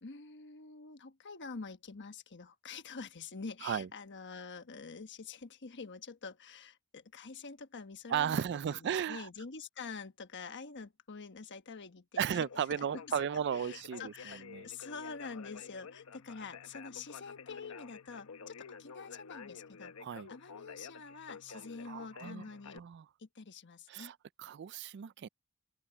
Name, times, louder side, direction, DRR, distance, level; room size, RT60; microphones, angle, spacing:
voice 1, 0.0-13.2 13.5-19.9 20.3-22.8 23.2-24.1, left 4 dB, 55° left, 1.2 m, -47 dB
voice 2, 8.1-9.3 12.2-14.7 20.0-20.3 21.9-22.4 22.8-23.0 23.9-25.3, right 8 dB, 50° right, 0.4 m, -35 dB
Conversation, 12.3-22.8, left 5 dB, 70° left, 0.8 m, -50 dB
open air
head